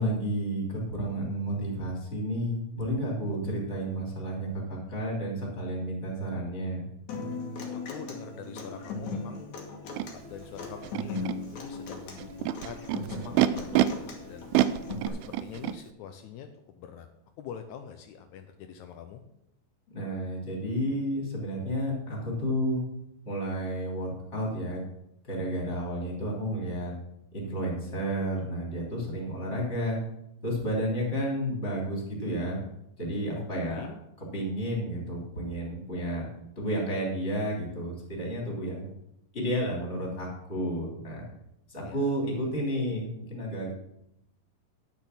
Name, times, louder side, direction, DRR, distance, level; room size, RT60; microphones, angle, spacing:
voice 1, 0.0-6.8 19.9-22.8 23.2-24.8 25.2-26.9 27.3-30.0 30.4-32.6 33.0-33.9 34.3-36.3 36.5-38.9 39.3-41.3 41.7-43.7, equal, 20° left, -3 dB, 3.4 m, -31 dB
Human voice / Acoustic guitar, 7.1-15.1, left 3 dB, 60° left, 2.7 m, -38 dB
voice 2, 7.9-9.6 10.1-14.6 15.1-17.1 17.4-19.2 33.4-34.0 41.8-42.1, left 8 dB, 85° left, 6 dB, 1.7 m, -45 dB
Animal, 10.0-10.1 10.8-11.4 12.2-13.9 14.5-15.8, right 15 dB, 90° right, 2.4 m, -26 dB
10.5 x 7.0 x 6.0 m, 0.82 s
omnidirectional pair, 4.2 m